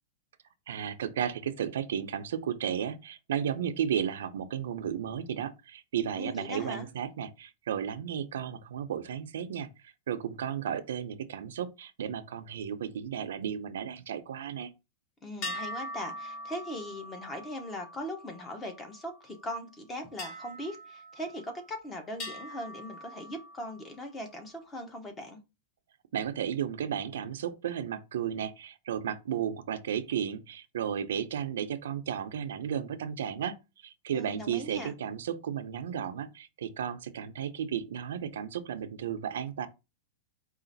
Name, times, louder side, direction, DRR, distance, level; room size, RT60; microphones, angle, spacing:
voice 1, 0.7-9.7 10.1-14.7 26.1-33.6 33.8-39.7, right 9 dB, 85° right, 0.6 m, -34 dB
voice 2, 6.2-6.9 15.2-25.4 34.1-34.9, equal, 15° left, 0.9 m, -40 dB
sound 1, 15.4-19.1 20.2-21.7 22.2-23.9, left 1 dB, 35° left, 1.5 m, -42 dB
4.8 x 2.5 x 3.9 m
supercardioid pair, 165°, 0 cm